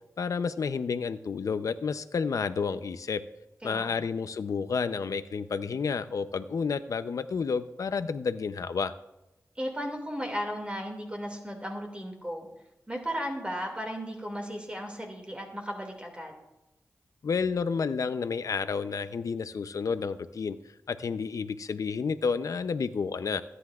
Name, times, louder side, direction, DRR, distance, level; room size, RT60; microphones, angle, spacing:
voice 1, 0.2-3.2 3.6-8.9 17.2-20.6 20.9-23.4, left 5 dB, 80° left, 12 dB, 0.6 m, -30 dB
voice 2, 3.6-4.1 9.6-12.5 12.9-16.3, equal, 20° right, 2 dB, 2.3 m, -35 dB
25.5 x 9.8 x 2.4 m, 0.94 s
cardioid pair, 55°, 6 cm